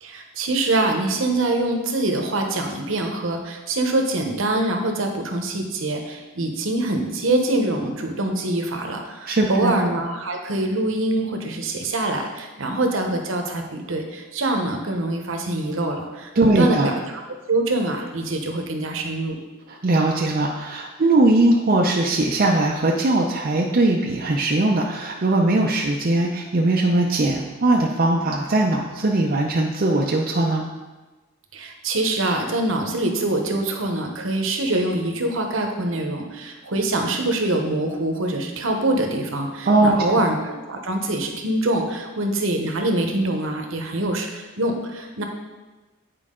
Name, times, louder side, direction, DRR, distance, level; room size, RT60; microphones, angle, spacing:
voice 1, 0.0-16.9 17.5-19.4 31.5-45.2, right 2 dB, 65° right, 3 dB, 0.9 m, -24 dB
voice 2, 9.3-9.7 16.4-16.9 19.7-30.7 39.7-40.0, right 2 dB, 40° right, -1 dB, 0.5 m, -20 dB
8.5 x 4.6 x 3.7 m, 1.2 s
head